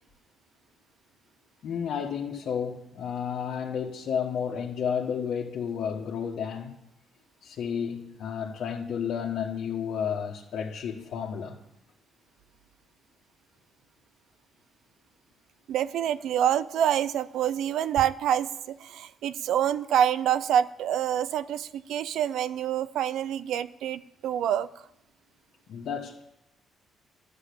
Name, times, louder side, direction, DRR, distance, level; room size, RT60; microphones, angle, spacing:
voice 1, 1.6-6.8 7.4-11.6 25.7-26.2, left 7 dB, 70° left, 1.4 m, -32 dB
voice 2, 15.7-24.7, right 10 dB, 80° right, 0.4 m, -26 dB
11.5 x 7.5 x 8.4 m
cardioid pair, 90°, 0 cm